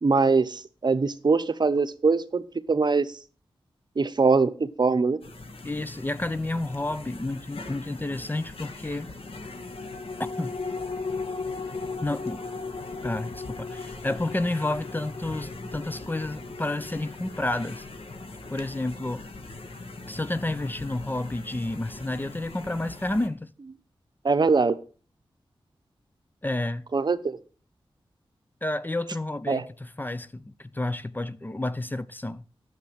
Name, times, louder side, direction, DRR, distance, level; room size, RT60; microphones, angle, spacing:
voice 1, 0.0-3.1 4.0-5.2 24.2-24.8 26.9-27.4 29.5-29.6, right 4 dB, 50° right, 0.9 m, -22 dB
sound 1, 5.2-23.3, left 2 dB, 80° left, 1.8 m, -42 dB
voice 2, 5.6-9.1 10.2-10.5 12.0-12.4 13.0-17.9 18.5-19.3 20.1-23.5 26.4-26.9 28.6-32.4, left 2 dB, 20° left, 0.6 m, -30 dB
sound 2, 9.3-20.1 20.5-20.6, left 4 dB, 55° left, 0.8 m, -38 dB
10.5 x 7.5 x 6.4 m
wide cardioid pair, 70°, 10 cm